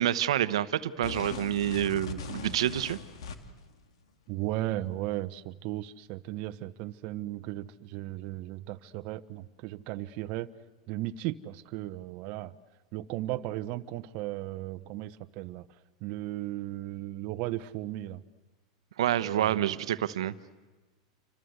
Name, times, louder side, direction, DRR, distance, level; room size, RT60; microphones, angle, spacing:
voice 1, 0.0-3.0 19.0-20.3, right 11 dB, 80° right, 13 dB, 1.1 m, -28 dB
sound 1, 1.0-3.7, left 4 dB, 80° left, 2.5 m, -40 dB
voice 2, 4.3-10.5 10.9-12.5 12.9-15.7 16.0-18.2 19.2-19.7, right 15 dB, 50° right, 10 dB, 1.0 m, -36 dB
29.0 x 25.5 x 8.1 m, 1.2 s
hypercardioid pair, 120°, 3 cm